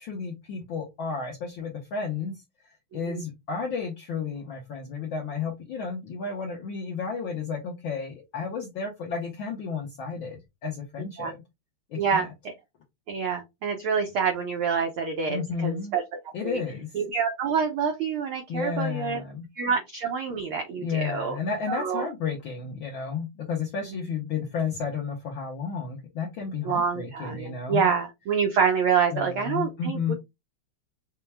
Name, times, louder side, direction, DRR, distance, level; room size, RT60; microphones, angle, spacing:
voice 1, 0.0-2.3 2.9-11.4 11.9-12.3 15.3-16.0 16.3-16.9 18.5-19.7 20.8-27.9 29.1-30.1, left 5 dB, 70° left, 0 dB, 1.2 m, -32 dB
voice 2, 12.0-12.5 13.1-16.0 16.4-16.6 16.9-19.2 19.6-21.4 21.7-22.0 26.6-30.1, right 6 dB, 85° right, 3 dB, 1.2 m, -27 dB
5.7 x 2.2 x 3.3 m, 0.21 s
omnidirectional pair, 3.3 m